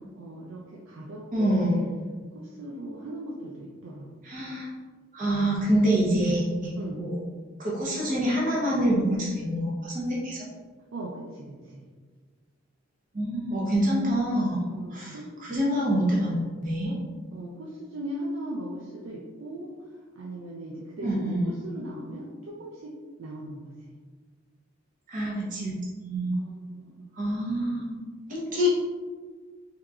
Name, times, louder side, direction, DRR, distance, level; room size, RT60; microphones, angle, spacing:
voice 1, 0.0-1.9 2.3-4.1 6.7-7.0 10.9-11.8 14.6-15.3 17.3-23.7 26.4-27.1, right 1 dB, 85° right, -3 dB, 0.5 m, -39 dB
voice 2, 1.3-1.8 4.2-4.7 5.1-6.7 7.0-7.2 7.6-10.4 13.1-15.2 15.4-16.9 21.0-21.5 25.1-25.7 26.0-26.3 27.1-27.8 28.3-28.7, equal, 45° right, -5 dB, 0.7 m, -26 dB
3.6 x 2.9 x 2.3 m, 1.5 s
head